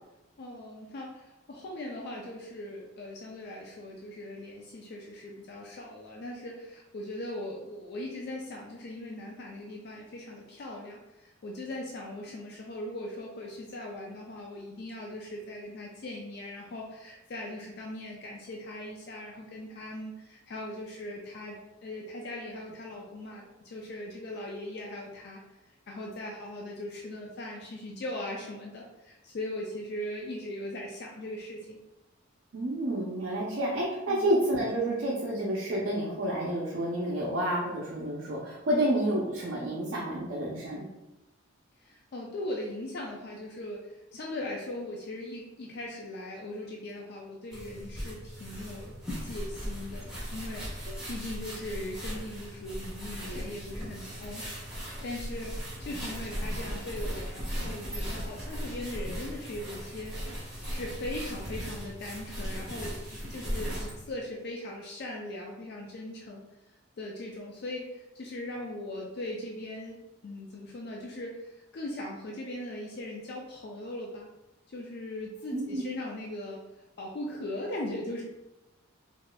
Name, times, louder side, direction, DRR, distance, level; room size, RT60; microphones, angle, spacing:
voice 1, 0.4-21.6 21.8-25.4 25.7-31.8 34.1-34.3 41.8-60.1 60.7-66.4 67.0-74.3 74.7-76.6 77.0-78.2, left 1 dB, 50° left, -1 dB, 0.4 m, -39 dB
voice 2, 32.5-40.9 50.9-51.0 75.5-75.8, right 1 dB, 60° right, -5 dB, 0.5 m, -29 dB
sound 1, 47.5-64.0, equal, 5° right, 1.0 m, -37 dB
4.0 x 2.4 x 2.2 m, 0.98 s
head